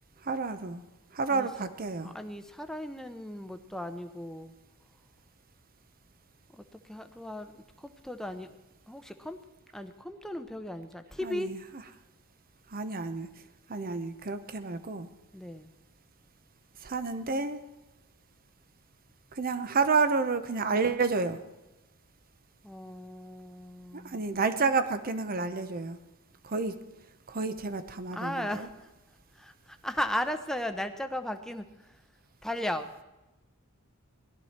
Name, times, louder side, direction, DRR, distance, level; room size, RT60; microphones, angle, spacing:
voice 1, 0.2-0.8 1.1-2.2 11.2-11.6 12.7-13.3 13.7-15.1 16.8-17.6 19.3-21.4 23.9-26.0 26.4-26.8 27.3-28.7, right 4 dB, 45° right, 11 dB, 0.9 m, -30 dB
voice 2, 2.0-4.5 6.5-8.6 8.9-9.4 9.7-11.5 15.3-15.7 22.6-24.2 28.1-28.9 29.4-31.7 32.4-32.9, left 1 dB, ahead, 7 dB, 0.8 m, -36 dB
18.0 x 12.0 x 4.4 m, 1.0 s
head